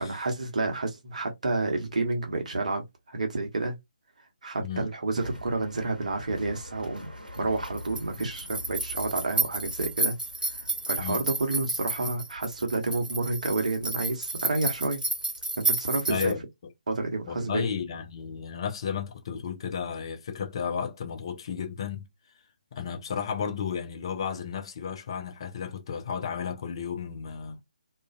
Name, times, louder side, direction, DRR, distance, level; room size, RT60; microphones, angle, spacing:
voice 1, 0.0-3.8 4.4-10.2 10.5-15.0 15.6-16.3 16.9-17.7, right 3 dB, 55° right, 0.9 m, -30 dB
sound 1, 5.2-16.3, right 3 dB, 85° right, 0.8 m, -32 dB
voice 2, 16.1-16.7 17.3-22.1 22.7-27.6, left 7 dB, 35° left, 0.5 m, -33 dB
2.5 x 2.3 x 2.3 m
figure-of-eight pair, 145°, 5 cm